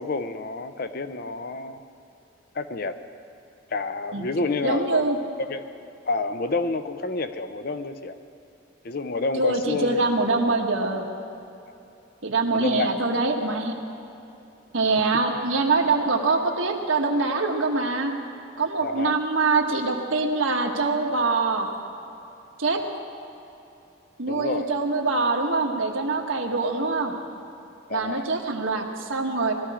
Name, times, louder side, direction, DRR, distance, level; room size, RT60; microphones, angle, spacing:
voice 1, 0.0-1.8 2.5-3.0 3.7-5.1 5.4-5.6 6.0-8.2 8.8-10.0 12.5-12.9 18.8-19.2 24.3-24.7 27.9-28.3, left 3 dB, 50° left, 10 dB, 0.6 m, -29 dB
voice 2, 4.6-5.2 9.4-11.0 12.2-13.7 14.7-18.1 18.6-21.7 22.6-22.8 24.2-27.1 27.9-29.5, right 3 dB, 75° right, 2 dB, 1.5 m, -24 dB
20.5 x 14.0 x 5.0 m, 2.8 s
head